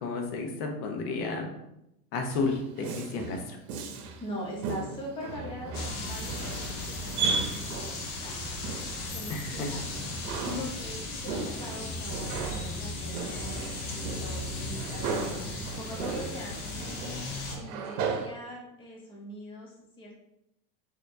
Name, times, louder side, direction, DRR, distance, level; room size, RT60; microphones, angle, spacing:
voice 1, 0.0-1.5 2.1-3.6 9.3-9.7, left 3 dB, 90° left, 3 dB, 0.9 m, -32 dB
Male speech man speaking, 2.3-4.3 4.6-8.1 8.6-9.1 9.5-18.3, right 4 dB, 80° right, 0.7 m, -36 dB
voice 2, 4.2-9.8 10.4-13.9 14.2-17.2 17.6-20.2, equal, 10° left, -3 dB, 0.5 m, -42 dB
sound 1, 5.7-17.6, left 2 dB, 50° left, 0.8 m, -36 dB
4.3 x 2.8 x 2.6 m, 0.85 s
supercardioid pair, 160°, 45 cm